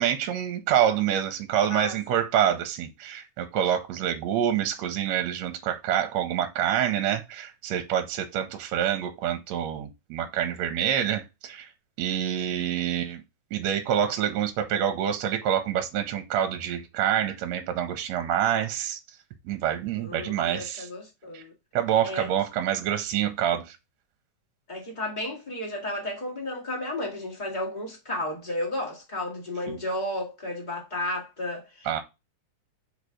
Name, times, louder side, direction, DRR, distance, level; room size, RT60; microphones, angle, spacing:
voice 1, 0.0-11.7 12.0-13.2 13.5-19.0 19.5-20.9 21.3-21.4 21.7-23.8 29.7-29.8 31.9-32.0, right 10 dB, 75° right, 1.9 m, -27 dB
voice 2, 19.9-21.5 22.0-22.3 24.7-32.0, left 1 dB, 20° left, 1.6 m, -33 dB
4.8 x 4.0 x 4.9 m
omnidirectional pair, 3.4 m